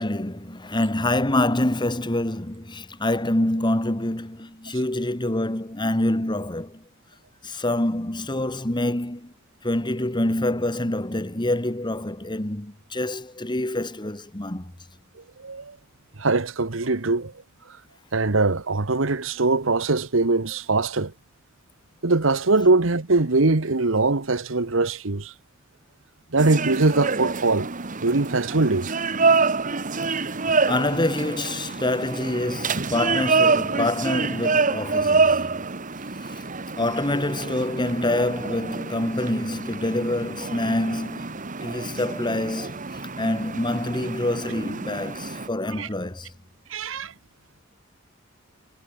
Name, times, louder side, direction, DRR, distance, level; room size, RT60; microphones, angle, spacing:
voice 1, 0.0-6.8 7.4-9.3 9.6-14.7 30.6-35.5 36.8-42.8 43.2-46.3, left 1 dB, 25° left, 1.9 m, -26 dB
voice 2, 15.4-15.8 16.2-17.3 18.1-21.1 22.0-25.3 26.3-27.7 28.0-28.9 45.7-45.9 46.7-47.1, right 3 dB, 70° right, 1.3 m, -22 dB
sound 1, 26.4-45.5, right 4 dB, 40° right, 1.6 m, -26 dB
head